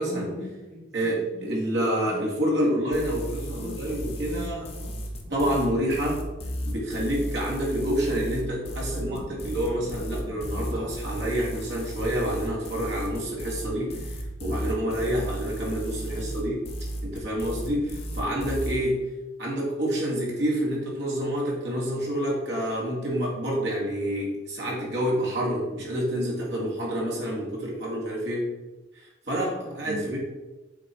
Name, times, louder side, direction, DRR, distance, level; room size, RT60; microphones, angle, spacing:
voice 1, 0.0-1.6 2.1-2.3 3.1-5.6 8.7-9.3 9.6-11.0 16.1-16.4 16.9-17.1 29.6-30.0, equal, 35° right, -4 dB, 1.9 m, -43 dB
voice 2, 0.9-4.7 5.3-6.2 6.6-16.6 17.0-19.0 19.4-28.5 28.9-30.2, equal, 65° right, -4 dB, 2.2 m, -28 dB
sound 1, 2.9-18.7, equal, 35° left, 0.9 m, -34 dB
7.1 x 3.8 x 4.5 m, 1.1 s
head